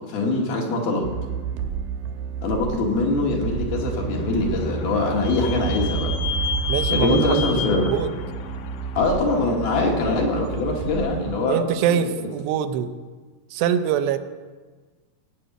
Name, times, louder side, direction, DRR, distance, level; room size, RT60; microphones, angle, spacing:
voice 1, 0.1-1.1 2.4-6.1 6.9-7.9 9.0-11.6 11.9-12.0, left 2 dB, 70° left, 0 dB, 3.6 m, -23 dB
sound 1, 1.0-11.4, right 7 dB, 70° right, 2.6 m, -30 dB
Vehicle / Squeak, 3.8-9.4, left 7 dB, 85° left, 2.6 m, -32 dB
voice 2, 6.7-7.3 7.7-8.1 11.5-12.9 13.5-14.2, right 9 dB, 85° right, 9 dB, 2.9 m, -23 dB
17.5 x 6.3 x 8.9 m, 1.4 s
omnidirectional pair, 4.8 m